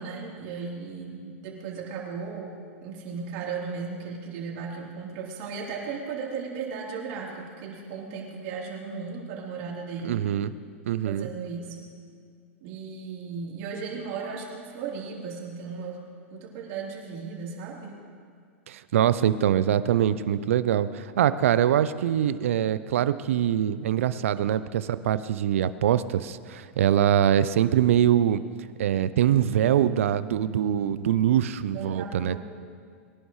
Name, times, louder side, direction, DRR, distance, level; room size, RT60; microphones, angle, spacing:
voice 1, 0.0-2.5 2.8-10.2 11.0-11.8 12.6-16.0 16.3-18.0 24.4-24.5 31.7-32.4, right 5 dB, 55° right, -3 dB, 3.7 m, -36 dB
voice 2, 10.0-10.5 10.9-11.3 18.7-28.4 28.8-32.4, right 10 dB, 75° right, 14 dB, 0.6 m, -23 dB
22.0 x 11.0 x 3.2 m, 2.1 s
hypercardioid pair, 105°, 7 cm